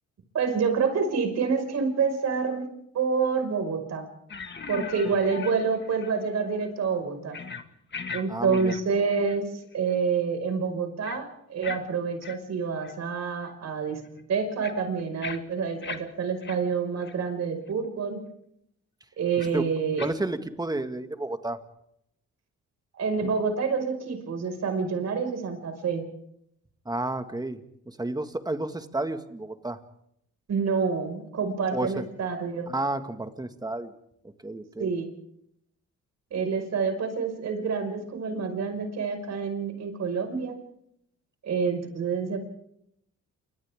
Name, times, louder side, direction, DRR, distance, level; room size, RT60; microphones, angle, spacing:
voice 1, 0.3-2.7 2.9-4.1 4.7-7.4 8.1-14.0 14.3-18.2 19.2-20.0 22.9-26.0 30.5-32.7 34.8-35.1 36.3-40.5 41.4-42.4, right 5 dB, 60° right, 6 dB, 5.6 m, -27 dB
sound 1, 4.3-6.2 6.5-6.7 7.3-7.7 7.9-8.2 8.5-9.4 9.7-9.9 11.0-11.2 11.6-11.8 12.2-12.4 12.8-12.9 13.5-13.6 14.0-16.0 16.4-16.6 17.0-17.1 17.7-17.8 19.4-19.5 20.0-20.1, left 5 dB, 35° left, 2.0 m, -38 dB
voice 2, 8.3-8.8 19.5-19.6 20.0-21.6 26.9-29.8 31.7-32.0 32.7-33.9 34.4-34.9, right 2 dB, 15° right, 8 dB, 1.9 m, -31 dB
29.0 x 25.0 x 3.7 m, 0.75 s
cardioid pair, 90°, 30 cm